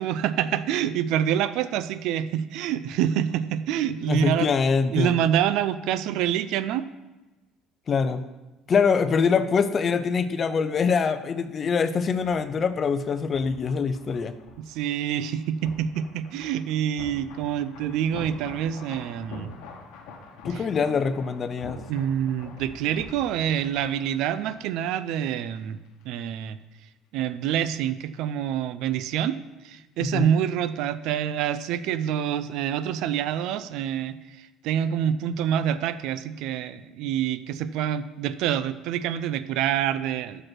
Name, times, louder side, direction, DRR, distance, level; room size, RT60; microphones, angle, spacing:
voice 1, 0.0-4.5 4.9-6.8 14.6-19.5 20.5-20.7 21.9-25.8 26.0-26.6 27.1-29.4 29.6-40.4, right 10 dB, 75° right, 14 dB, 0.4 m, -26 dB
voice 2, 4.1-5.1 7.9-8.2 8.7-14.3 20.4-21.8 30.1-30.3, left 5 dB, 35° left, 11 dB, 0.5 m, -24 dB
sound 1, 11.9-25.6 25.9-26.0, left 3 dB, 85° left, 1.1 m, -45 dB
6.0 x 5.1 x 6.0 m, 1.1 s
cardioid pair, 125°, 0 cm